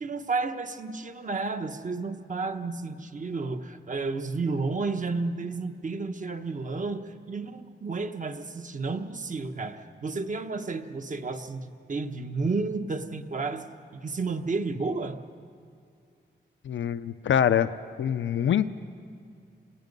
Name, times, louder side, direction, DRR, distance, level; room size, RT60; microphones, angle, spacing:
voice 1, 0.0-13.6 14.0-15.2, right 3 dB, 40° right, 7 dB, 1.1 m, -32 dB
voice 2, 16.6-17.7 18.0-18.7, left 9 dB, 90° left, 12 dB, 0.5 m, -24 dB
27.5 x 18.0 x 5.4 m, 2.4 s
wide cardioid pair, 110°, 19 cm